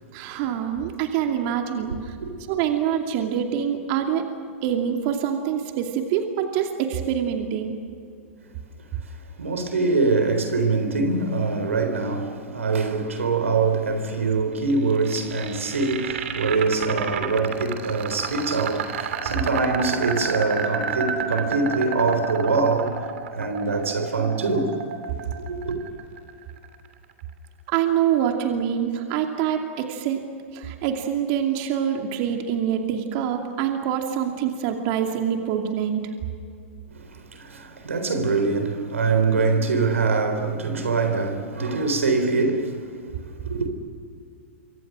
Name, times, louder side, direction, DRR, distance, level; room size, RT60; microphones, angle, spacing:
voice 1, 0.1-2.2 2.5-4.2 4.6-7.8 27.7-30.3 30.5-36.0, right 9 dB, 50° right, 2.6 m, -25 dB
voice 2, 1.9-2.3 9.0-24.7 25.4-25.8 36.9-42.9 43.2-43.7, right 4 dB, 90° right, 3.9 m, -24 dB
sound 1, 14.7-26.8, right 6 dB, 70° right, 2.8 m, -31 dB
28.0 x 25.0 x 6.3 m
hypercardioid pair, 110°, 7 cm